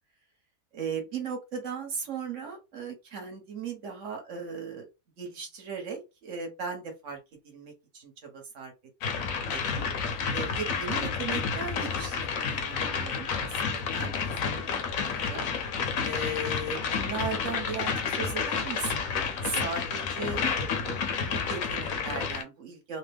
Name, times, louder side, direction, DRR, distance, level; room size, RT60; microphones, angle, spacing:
voice 1, 0.7-4.9 5.2-7.2 7.4-8.7 9.1-9.9 10.3-14.8 15.2-15.5 16.0-19.0 19.4-21.0 21.2-23.0, right 4 dB, 55° right, 4 dB, 1.2 m, -37 dB
sound 1, 9.0-22.4, left 6 dB, 70° left, 0.9 m, -30 dB
3.0 x 2.1 x 3.4 m, 0.25 s
omnidirectional pair, 1.7 m